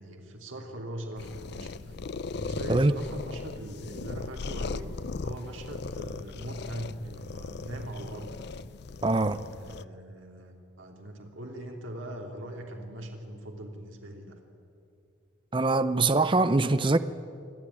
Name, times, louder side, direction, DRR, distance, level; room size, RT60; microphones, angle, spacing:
voice 1, 0.0-2.0 2.3-4.9 5.2-8.6 9.4-14.4, right 1 dB, 75° right, 3.1 m, -41 dB
sound 1, 1.2-9.8, left 4 dB, 55° left, 0.5 m, -38 dB
voice 2, 9.0-9.4 15.5-17.0, right 2 dB, 25° right, 0.6 m, -23 dB
26.5 x 11.5 x 9.6 m
head